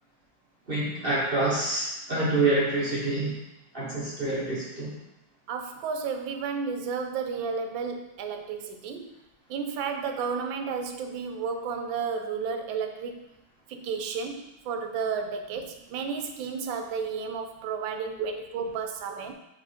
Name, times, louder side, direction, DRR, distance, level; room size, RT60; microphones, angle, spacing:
voice 1, 0.7-3.3 3.7-4.9, right 2 dB, 35° right, -7 dB, 1.0 m, -27 dB
voice 2, 5.5-9.1 9.5-13.3 13.7-19.3, right 5 dB, 75° right, 5 dB, 1.3 m, -32 dB
4.7 x 4.2 x 4.9 m, 0.90 s
omnidirectional pair, 2.2 m